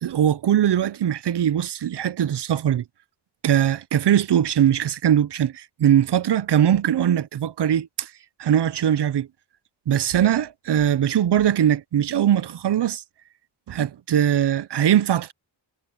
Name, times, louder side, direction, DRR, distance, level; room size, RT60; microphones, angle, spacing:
voice 1, 0.0-2.8 3.4-8.1 8.4-9.3 9.9-13.0 13.7-15.3, right 10 dB, 65° right, 0.7 m, -21 dB
wide cardioid pair, 130°, 44 cm